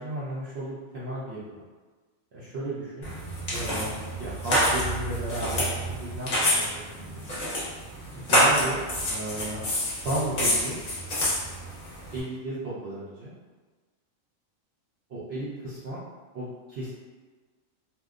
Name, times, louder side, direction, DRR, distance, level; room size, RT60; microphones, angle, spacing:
voice 1, 0.0-1.6 2.3-3.1 3.5-5.6 6.0-7.2 8.1-8.8 9.1-10.8 12.1-13.3 15.1-16.0 16.3-16.9, right 1 dB, 60° right, -10 dB, 0.7 m, -34 dB
sound 1, 3.0-12.2, equal, 45° left, 0.7 m, -27 dB
2.8 x 2.2 x 2.4 m, 1.3 s
omnidirectional pair, 1.4 m